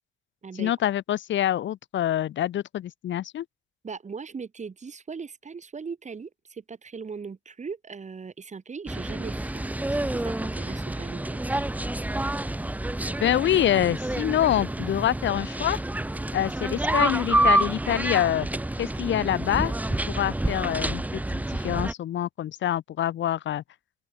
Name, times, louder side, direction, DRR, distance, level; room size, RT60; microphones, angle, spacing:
voice 1, 0.6-3.4 13.2-15.8 16.3-18.5 18.8-19.7 20.1-23.6, left 11 dB, 70° left, 1.6 m, -26 dB
voice 2, 3.8-9.6 9.9-11.6, right 5 dB, 35° right, 4.5 m, -39 dB
sound 1, 8.9-21.9, right 1 dB, 10° right, 1.1 m, -28 dB
open air
cardioid pair, 90°, 20 cm